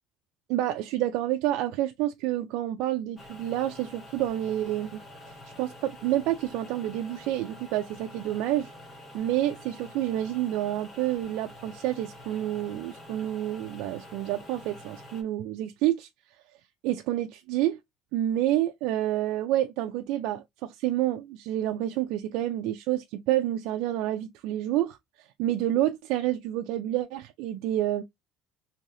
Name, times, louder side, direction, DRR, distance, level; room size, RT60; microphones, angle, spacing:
voice 1, 0.5-5.0 5.6-8.7 9.1-16.1 16.8-17.8 18.1-28.0, right 13 dB, 60° right, 0.3 m, -28 dB
sound 1, 3.2-15.2, left 1 dB, 20° left, 0.8 m, -47 dB
3.1 x 2.7 x 2.6 m
cardioid pair, 180°, 0 cm